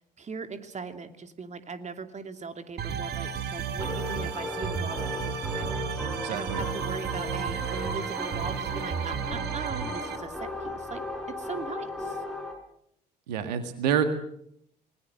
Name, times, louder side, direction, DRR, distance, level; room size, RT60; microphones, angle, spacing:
voice 1, 0.0-11.0 11.4-12.2, right 5 dB, 35° right, 8 dB, 2.7 m, -39 dB
sound 1, 2.8-10.2, right 7 dB, 50° right, 2.2 m, -33 dB
sound 2, 3.8-12.5, left 1 dB, 5° left, 7.5 m, -36 dB
voice 2, 6.2-6.6 13.3-14.0, right 9 dB, 75° right, 9 dB, 1.9 m, -27 dB
28.0 x 20.5 x 7.9 m, 0.73 s
figure-of-eight pair, 55°, 21 cm